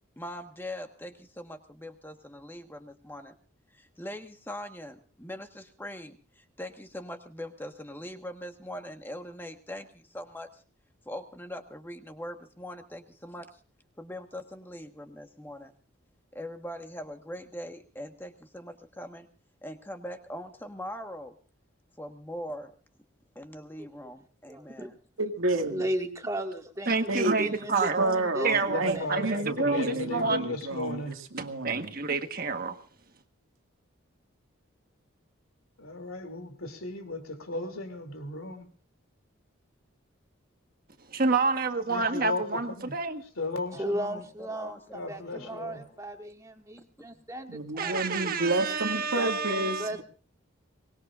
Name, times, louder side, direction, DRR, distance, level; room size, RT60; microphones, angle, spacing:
voice 1, 0.2-3.3 3.7-10.6 11.0-13.6 14.0-15.7 16.3-19.3 19.6-21.3 22.0-22.7 23.3-24.9 44.4-45.1 45.3-45.6 47.0-47.2, left 1 dB, 10° left, 1.4 m, -41 dB
voice 2, 24.5-24.9 25.7-29.1 43.7-47.5 47.8-48.0 49.2-50.0, right 1 dB, 15° right, 2.0 m, -36 dB
voice 3, 25.2-25.8 27.1-31.9 47.5-50.0, right 2 dB, 85° right, 2.1 m, -30 dB
voice 4, 26.9-28.1 28.4-30.5 31.4-32.8 41.1-43.2 47.8-49.9, right 4 dB, 45° right, 1.5 m, -28 dB
voice 5, 28.6-31.2 35.8-38.7 41.9-43.0 43.4-44.2 44.9-46.0, left 2 dB, 85° left, 3.0 m, -36 dB
24.0 x 20.0 x 2.6 m
head